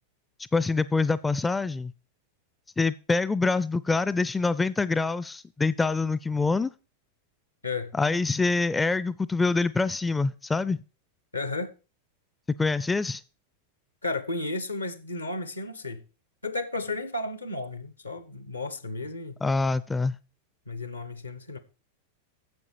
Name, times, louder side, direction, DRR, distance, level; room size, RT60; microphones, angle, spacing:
voice 1, 0.5-1.9 2.8-6.7 7.9-10.8 12.6-13.2 19.4-20.2, left 3 dB, 10° left, 0.4 m, -25 dB
voice 2, 11.3-11.7 14.0-16.0 16.4-19.4 20.7-21.6, left 2 dB, 80° left, 1.2 m, -33 dB
9.6 x 7.4 x 4.6 m
figure-of-eight pair, 90°, 0 cm